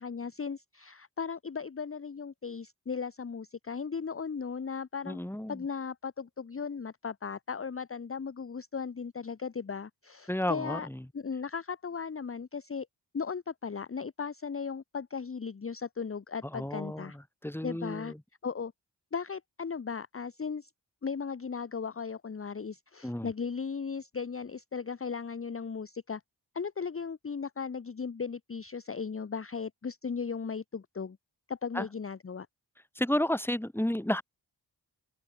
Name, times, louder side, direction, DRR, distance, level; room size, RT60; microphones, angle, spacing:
voice 1, 0.0-5.2 5.5-10.9 11.1-12.9 13.1-17.2 17.6-18.1 18.4-18.7 19.1-20.7 21.0-26.2 26.5-31.2 31.5-32.5, left 5 dB, 30° left, 0.8 m, -37 dB
voice 2, 5.1-5.6 10.3-11.0 16.5-18.2 23.0-23.3 31.7-31.9 33.0-34.2, left 1 dB, 5° left, 1.9 m, -32 dB
open air
cardioid pair, 40°, 44 cm